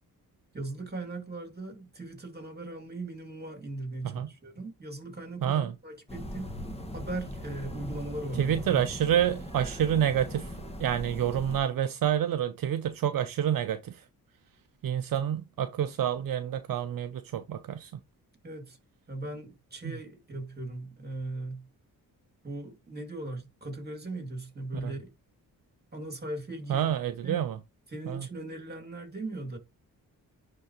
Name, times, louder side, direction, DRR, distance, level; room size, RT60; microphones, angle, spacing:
voice 1, 0.5-6.5 6.9-8.8 18.4-18.8 19.1-21.7 22.4-25.1 25.9-26.9 27.2-27.4 27.9-29.6, right 2 dB, 25° right, 2.4 m, -38 dB
voice 2, 5.4-5.7 8.4-10.5 10.8-14.0 14.8-17.9 19.8-19.9 26.7-27.6 28.1-28.3, right 10 dB, 65° right, 0.6 m, -28 dB
sound 1, 6.1-11.6, equal, 15° left, 1.4 m, -40 dB
10.5 x 3.8 x 2.9 m
cardioid pair, 80°, 37 cm